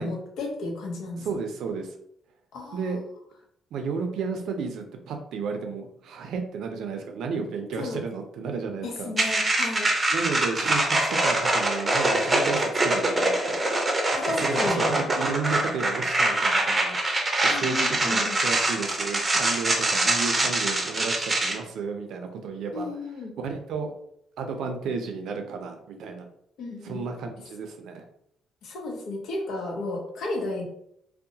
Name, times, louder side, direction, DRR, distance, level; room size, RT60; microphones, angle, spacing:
voice 1, 0.0-1.4 2.5-2.9 7.8-8.0 8.8-9.9 14.1-14.9 17.5-18.4 22.7-23.3 26.6-27.1 28.6-30.6, left 2 dB, 75° left, 1 dB, 0.7 m, -33 dB
voice 2, 1.2-1.9 2.7-3.0 3.7-9.1 10.1-13.6 14.3-17.0 17.4-22.9 23.4-23.9 24.4-26.3 26.8-28.0, right 5 dB, 75° right, 5 dB, 0.4 m, -32 dB
sound 1, 9.2-21.5, right 2 dB, 25° right, 0.6 m, -24 dB
2.7 x 2.1 x 2.7 m, 0.73 s
cardioid pair, 90°, 0 cm